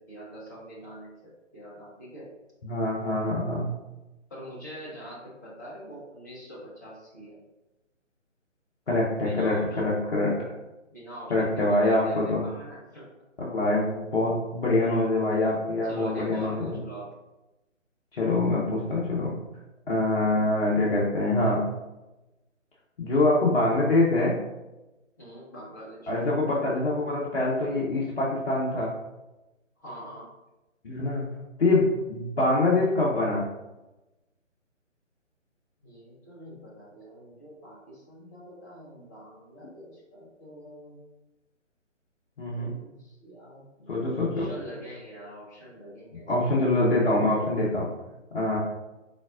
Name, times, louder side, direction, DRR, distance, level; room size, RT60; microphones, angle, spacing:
voice 1, 0.0-2.3 4.3-7.4 9.2-9.9 10.9-13.1 15.8-17.2 25.2-26.1 29.8-30.3 35.8-41.0 42.5-46.7, equal, 15° left, -7 dB, 0.7 m, -44 dB
voice 2, 2.6-3.7 8.9-10.4 11.3-12.5 13.4-16.8 18.1-19.3 19.9-21.7 23.0-24.4 26.1-28.9 30.8-31.3 31.6-33.5 42.4-42.7 43.9-44.5 46.3-47.9 48.3-48.6, left 2 dB, 50° left, -5 dB, 0.9 m, -25 dB
4.1 x 4.0 x 2.4 m, 1.0 s
figure-of-eight pair, 145°, 38 cm